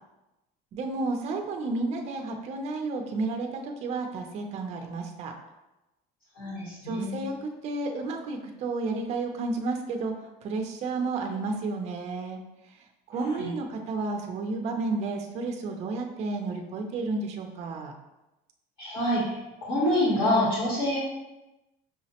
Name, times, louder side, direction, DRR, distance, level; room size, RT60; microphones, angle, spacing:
voice 1, 0.7-5.3 6.8-10.1 10.4-12.4 13.1-17.9, right 3 dB, 35° right, 3 dB, 0.4 m, -31 dB
voice 2, 6.3-7.2 13.2-13.5 18.8-19.4 19.7-21.0, left 1 dB, 40° left, -6 dB, 1.0 m, -26 dB
5.5 x 2.0 x 2.8 m, 1.0 s
cardioid pair, 175°, 19 cm